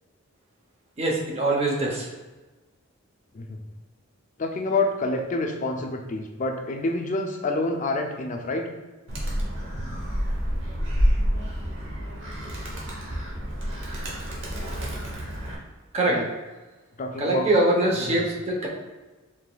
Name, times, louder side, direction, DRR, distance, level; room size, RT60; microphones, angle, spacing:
voice 1, 1.0-2.1 15.9-16.2 17.2-18.7, right 2 dB, 30° right, -2 dB, 0.7 m, -23 dB
voice 2, 4.4-8.7 16.1-16.2 17.0-17.5 18.1-18.2, left 2 dB, 35° left, 3 dB, 0.4 m, -27 dB
Animal, 9.1-15.6, equal, 60° right, 0.9 m, -28 dB
4.8 x 3.2 x 2.2 m, 1.2 s
head